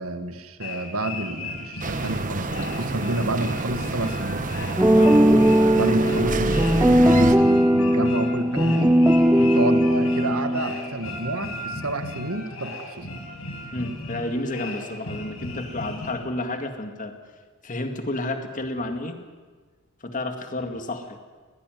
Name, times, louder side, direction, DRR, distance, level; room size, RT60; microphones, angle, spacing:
voice 1, 0.0-4.4 5.8-9.0 9.5-13.1, right 2 dB, 80° right, 9 dB, 1.7 m, -29 dB
sound 1, 0.6-16.1, left 2 dB, 80° left, 5.9 m, -36 dB
sound 2, 1.8-7.4, right 2 dB, 40° right, 1.2 m, -28 dB
sound 3, 4.8-10.8, equal, 10° right, 0.6 m, -18 dB
voice 2, 6.0-6.4 9.3-9.5 13.7-17.1 17.6-19.2 20.0-21.2, left 2 dB, 40° left, 6 dB, 2.2 m, -31 dB
20.5 x 17.5 x 9.3 m, 1.5 s
head